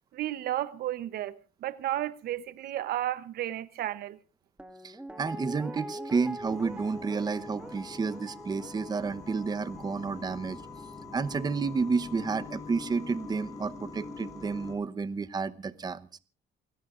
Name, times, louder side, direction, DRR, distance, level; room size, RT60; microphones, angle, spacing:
voice 1, 0.1-4.2, right 13 dB, 65° right, 0.8 m, -33 dB
Guitar, 4.6-11.6 11.9-12.0, right 1 dB, 5° right, 1.8 m, -44 dB
voice 2, 4.8-10.6 11.1-16.1, right 4 dB, 25° right, 0.9 m, -31 dB
sound 1, 6.4-14.7, left 3 dB, 20° left, 6.6 m, -45 dB
28.5 x 17.0 x 2.5 m
cardioid pair, 110°, 17 cm